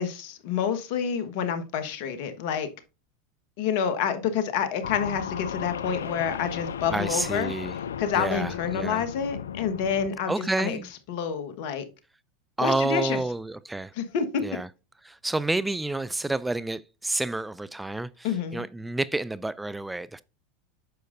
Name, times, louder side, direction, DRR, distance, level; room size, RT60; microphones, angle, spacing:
voice 1, 0.0-2.7 3.6-7.5 8.0-10.3 10.6-10.8 11.1-11.8 12.6-13.2 14.0-14.4 18.2-18.6, left 7 dB, 60° left, 1.3 m, -28 dB
sound 1, 4.8-10.1, left 8 dB, 80° left, 0.4 m, -35 dB
voice 2, 6.9-7.8 8.1-9.0 10.3-10.9 12.6-13.9 14.4-14.7 15.0-20.2, right 2 dB, 10° right, 0.4 m, -29 dB
9.2 x 6.4 x 2.6 m
hypercardioid pair, 90°, 0 cm